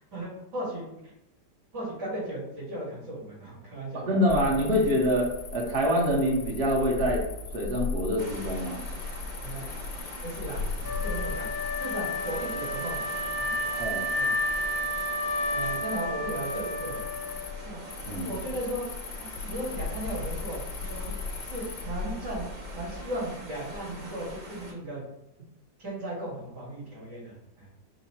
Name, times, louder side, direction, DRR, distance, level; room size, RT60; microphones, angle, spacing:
voice 1, 0.1-1.1 1.7-4.2 9.4-9.7 10.2-13.6 14.2-14.3 15.5-17.1 17.6-17.8 18.2-18.8 19.2-21.1 21.4-22.5 22.7-25.0 25.8-27.7, right 1 dB, 65° right, -6 dB, 2.5 m, -36 dB
voice 2, 3.9-7.2 7.5-8.9 13.8-14.1 18.1-18.3, equal, 45° right, -2 dB, 0.9 m, -25 dB
Cricket, 4.3-23.2, left 4 dB, 85° left, 1.3 m, -38 dB
sound 1, 8.2-24.7, equal, 80° right, 0.4 m, -43 dB
Wind instrument woodwind instrument, 10.8-17.8, left 1 dB, 65° left, 1.2 m, -31 dB
5.4 x 2.1 x 4.2 m, 0.86 s
omnidirectional pair, 2.0 m